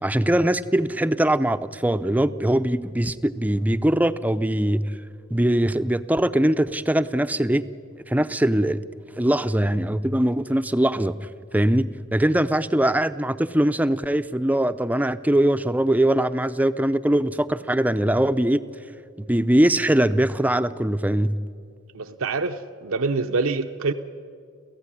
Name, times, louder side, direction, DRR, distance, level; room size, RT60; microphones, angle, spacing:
voice 1, 0.0-4.9 5.3-7.6 8.1-8.8 9.2-11.2 11.5-18.6 19.3-21.4, right 1 dB, 5° right, 0.5 m, -21 dB
voice 2, 21.9-23.9, right 3 dB, 65° right, 0.7 m, -25 dB
29.5 x 15.5 x 9.9 m
head